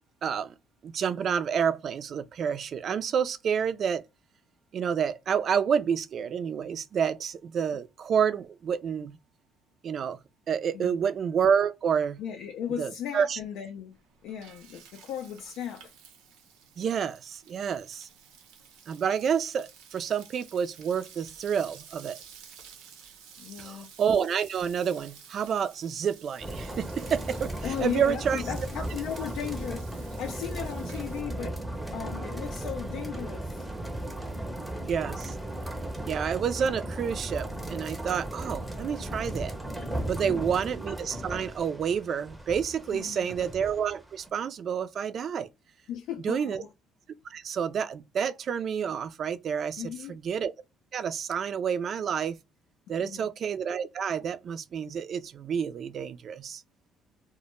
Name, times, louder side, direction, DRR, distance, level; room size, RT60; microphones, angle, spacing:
voice 1, 0.2-0.5 0.8-4.0 4.7-9.2 9.8-10.2 10.5-12.2 12.8-13.4 16.8-18.1 18.9-22.2 23.6-27.5 27.8-28.4 34.8-35.3 36.1-39.5 40.0-45.5 46.2-46.6 47.3-49.8 50.1-50.5 50.9-52.4 52.9-56.6, right 7 dB, 50° right, 0.3 m, -29 dB
voice 2, 10.7-11.1 12.2-14.0 14.2-15.9 23.4-23.9 27.6-31.6 31.9-33.7 40.2-40.5 42.9-43.4 45.9-46.7 49.8-50.2 53.0-53.3, left 9 dB, 75° left, 0.3 m, -36 dB
Frying (food), 13.9-31.2, right 7 dB, 90° right, 0.6 m, -52 dB
sound 1, 26.4-44.3, right 1 dB, 5° right, 0.6 m, -36 dB
2.1 x 2.1 x 2.9 m
cardioid pair, 95°, 0 cm